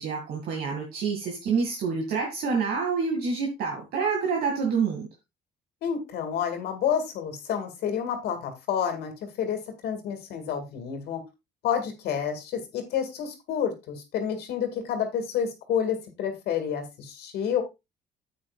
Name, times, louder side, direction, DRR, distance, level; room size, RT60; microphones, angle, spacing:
voice 1, 0.0-5.1, right 5 dB, 70° right, -1 dB, 2.2 m, -27 dB
voice 2, 5.8-11.2 11.6-17.6, left 8 dB, 75° left, 5 dB, 2.2 m, -29 dB
9.7 x 8.4 x 2.4 m, 0.23 s
cardioid pair, 110°, 17 cm